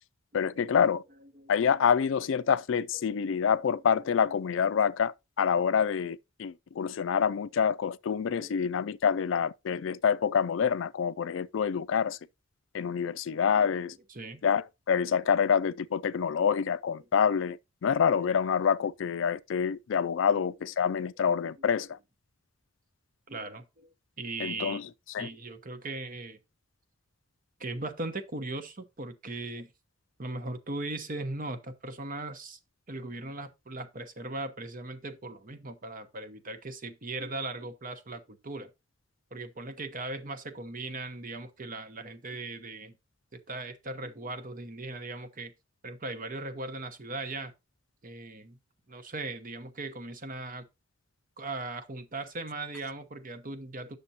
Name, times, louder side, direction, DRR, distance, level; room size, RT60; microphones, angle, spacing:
voice 1, 0.3-1.0 1.5-12.2 12.7-14.0 14.4-22.0 24.4-24.9 25.1-25.3, left 7 dB, 70° left, 0.4 m, -27 dB
voice 2, 3.0-3.3 8.3-8.8 14.1-14.4 20.3-20.4 21.4-21.5 23.3-23.9 24.2-24.8 25.2-26.4 27.6-29.7 30.2-32.6 32.9-38.7 39.3-42.9 43.3-45.5 45.8-47.5 48.0-48.6 48.9-50.6 51.4-54.0, right 2 dB, 45° right, 1.0 m, -38 dB
9.5 x 6.6 x 2.8 m
head